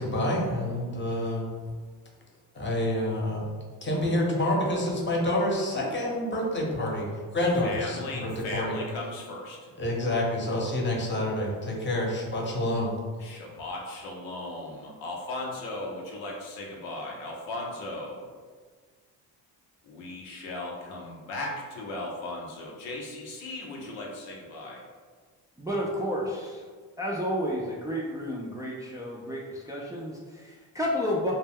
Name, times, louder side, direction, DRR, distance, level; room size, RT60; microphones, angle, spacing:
voice 1, 0.0-1.5 2.5-3.5 3.8-8.8 9.8-12.9, left 1 dB, 25° left, -2 dB, 0.8 m, -28 dB
voice 2, 7.6-9.7 13.2-18.3 19.8-24.9, left 2 dB, 90° left, -1 dB, 0.6 m, -37 dB
voice 3, 25.6-26.6 27.0-31.3, equal, 10° right, -3 dB, 0.4 m, -31 dB
2.2 x 2.1 x 3.4 m, 1.5 s
supercardioid pair, 55°, 47 cm